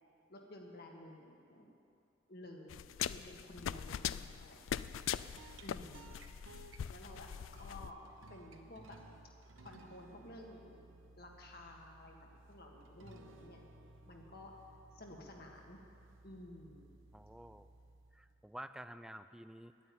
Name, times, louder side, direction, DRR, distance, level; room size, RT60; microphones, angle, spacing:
voice 1, 0.3-1.7 2.3-5.2 5.6-6.0 6.6-7.3 7.6-8.0 8.3-9.0 9.6-10.8 11.2-13.6 14.1-14.6 14.9-15.8 16.2-16.9, left 1 dB, 55° left, 1 dB, 1.8 m, -53 dB
sound 1, 2.7-7.9, left 9 dB, 80° left, 0.3 m, -41 dB
sound 2, 5.0-18.6, right 2 dB, 85° right, 0.9 m, -59 dB
voice 2, 17.1-17.7 18.1-19.7, right 1 dB, 5° right, 10 dB, 0.3 m, -50 dB
11.0 x 9.4 x 9.5 m, 2.5 s
head